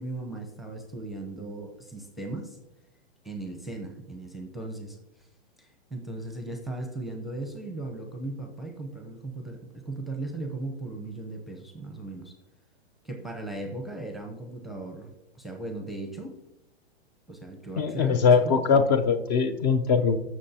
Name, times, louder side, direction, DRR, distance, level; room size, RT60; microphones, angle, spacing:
voice 1, 0.0-2.6 3.2-5.0 5.6-12.3 13.0-16.4 17.3-18.8, right 2 dB, ahead, 3 dB, 0.7 m, -37 dB
voice 2, 17.8-20.2, left 5 dB, 40° left, 10 dB, 0.7 m, -21 dB
13.5 x 6.3 x 2.8 m, 0.94 s
hypercardioid pair, 140°, 32 cm